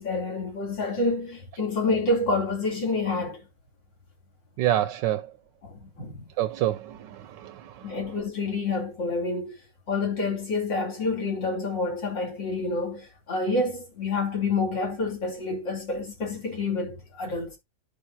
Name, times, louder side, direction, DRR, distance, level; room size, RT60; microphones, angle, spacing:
voice 1, 0.0-3.4 5.6-6.2 7.8-9.5 9.9-17.6, left 3 dB, 85° left, 3.7 m, -28 dB
voice 2, 4.6-5.3 6.4-8.0, right 13 dB, 85° right, 1.3 m, -27 dB
11.5 x 5.0 x 2.7 m
omnidirectional pair, 1.9 m